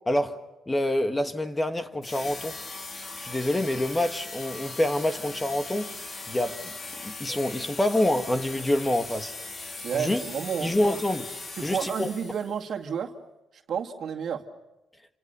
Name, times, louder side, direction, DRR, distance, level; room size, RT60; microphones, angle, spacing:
voice 1, 0.1-0.4 0.7-2.6 3.2-5.9 6.3-6.7 7.0-9.3 9.9-10.2 10.6-11.3 11.6-12.1, left 1 dB, 15° left, 1.6 m, -26 dB
sound 1, 2.0-12.6, left 3 dB, 45° left, 4.1 m, -39 dB
voice 2, 9.8-10.8 11.5-13.1 13.5-14.5, right 7 dB, 60° right, 2.2 m, -31 dB
28.5 x 27.5 x 6.9 m
cardioid pair, 90°, 0 cm